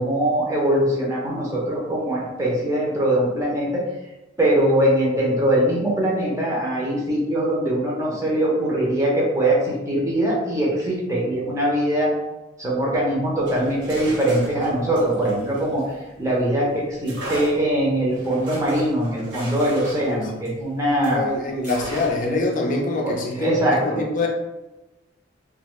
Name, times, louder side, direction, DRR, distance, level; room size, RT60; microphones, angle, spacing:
voice 1, 0.0-3.8 4.4-12.1 12.6-15.8 16.2-21.3 23.0-24.0, right 1 dB, 15° right, -4 dB, 0.7 m, -22 dB
sound 1, 13.3-16.4 17.0-21.2 21.6-22.4, right 1 dB, 65° right, 1.1 m, -37 dB
voice 2, 20.0-20.4 21.1-24.3, left 2 dB, 45° left, 0 dB, 0.4 m, -25 dB
2.5 x 2.4 x 3.0 m, 1.0 s
head